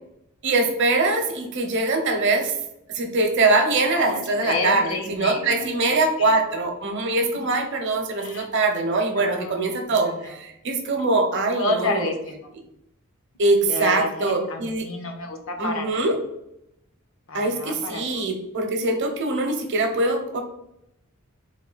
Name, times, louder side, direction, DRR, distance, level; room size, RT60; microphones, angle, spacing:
voice 1, 0.4-2.5 2.9-12.1 13.4-14.9 15.6-16.1 17.3-20.4, right 2 dB, 55° right, 4 dB, 0.7 m, -23 dB
voice 2, 3.9-6.3 8.2-8.5 9.2-10.3 11.6-12.5 13.7-16.1 17.3-18.3, left 2 dB, 65° left, 4 dB, 0.7 m, -30 dB
3.7 x 2.7 x 3.9 m, 0.81 s
head